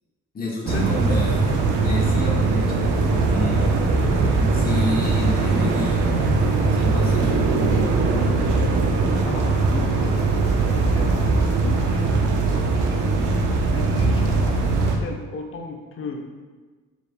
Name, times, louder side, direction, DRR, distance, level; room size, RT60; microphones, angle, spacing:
voice 1, 0.3-1.5 1.8-3.8 4.3-6.1 6.7-7.9, left 2 dB, 30° left, -3 dB, 1.1 m, -30 dB
sound 1, 0.7-15.0, right 3 dB, 85° right, 0.6 m, -20 dB
voice 2, 6.3-6.6 9.2-12.4 13.7-16.4, left 2 dB, 45° left, 2 dB, 0.7 m, -35 dB
5.0 x 3.4 x 2.3 m, 1.4 s
cardioid pair, 90°, 30 cm